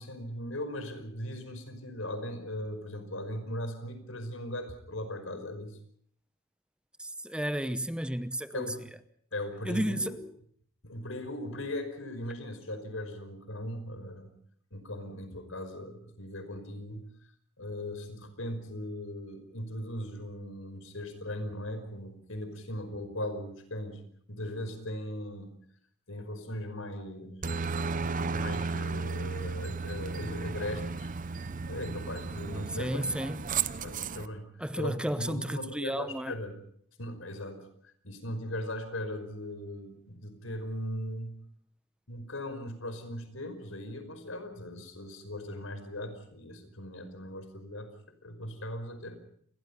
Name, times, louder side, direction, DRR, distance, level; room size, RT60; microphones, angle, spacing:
voice 1, 0.0-5.8 8.5-8.8 9.3-10.2 10.8-14.3 14.7-17.1 17.6-24.0 24.3-25.5 26.1-27.5 28.0-31.1 31.6-33.1 33.8-36.5 37.0-41.4 42.1-47.9 48.2-49.2, left 1 dB, 80° left, 5.3 m, -39 dB
voice 2, 7.0-8.7 9.6-10.3 32.7-33.4 34.6-36.3, right 1 dB, 5° right, 0.9 m, -33 dB
Aircraft, 27.4-34.3, right 4 dB, 45° right, 0.9 m, -34 dB
29.0 x 22.0 x 5.5 m
head